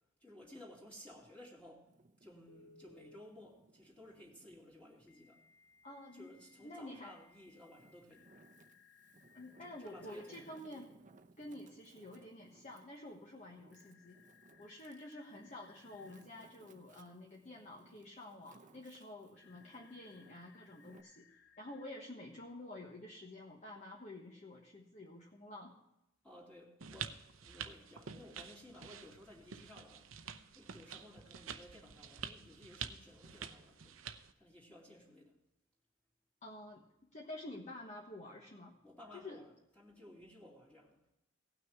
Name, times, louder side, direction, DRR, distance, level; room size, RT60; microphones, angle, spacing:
voice 1, 0.2-1.9 2.2-5.4 6.1-8.3 9.6-10.5 26.2-30.1 30.5-34.0 34.4-35.3 38.8-41.0, left 1 dB, 5° left, -4 dB, 2.7 m, -56 dB
Wind, 1.8-4.6 5.1-6.4 7.0-21.0, right 3 dB, 40° right, 0.8 m, -65 dB
Telephone, 2.5-3.2 5.1-10.6 13.7-16.2 19.4-21.9, left 5 dB, 60° left, 0.8 m, -65 dB
voice 2, 5.8-6.3 6.6-7.1 9.3-11.0 11.4-14.2 14.6-21.3 21.6-25.8 36.4-36.8 37.1-38.7 39.1-39.4, left 1 dB, 35° left, -1 dB, 1.3 m, -50 dB
sound 1, 26.8-34.3, right 7 dB, 90° right, 0.7 m, -48 dB
17.5 x 6.2 x 4.6 m, 0.86 s
head